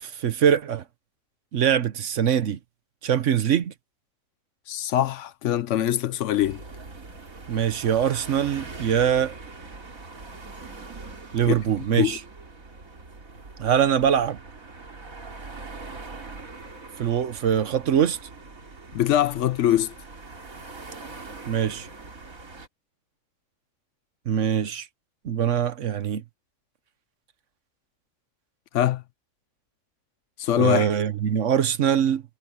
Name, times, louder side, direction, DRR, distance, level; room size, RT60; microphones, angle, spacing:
voice 1, 0.0-0.8 1.5-2.6 3.0-3.7 7.5-9.4 11.3-12.2 13.6-14.4 17.0-18.2 21.5-21.9 24.3-24.9 25.2-26.2 30.6-32.2, right 9 dB, 65° right, 1.2 m, -23 dB
voice 2, 4.7-6.6 11.5-11.6 12.0-12.2 18.9-19.9 28.7-29.0 30.4-30.9, left 12 dB, 70° left, 0.9 m, -23 dB
sound 1, 6.4-22.7, right 3 dB, 80° right, 3.3 m, -42 dB
omnidirectional pair, 1.4 m